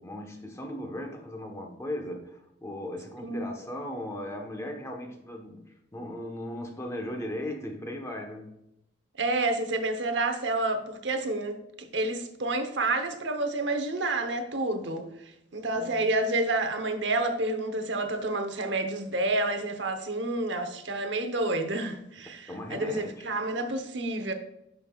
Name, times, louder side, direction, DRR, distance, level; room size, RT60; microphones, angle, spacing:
voice 1, 0.0-8.5 15.7-16.0 22.5-23.3, left 1 dB, 15° left, 1.1 m, -37 dB
voice 2, 9.2-15.0 15.5-24.3, right 2 dB, 65° right, 0.9 m, -29 dB
11.0 x 5.6 x 2.4 m
head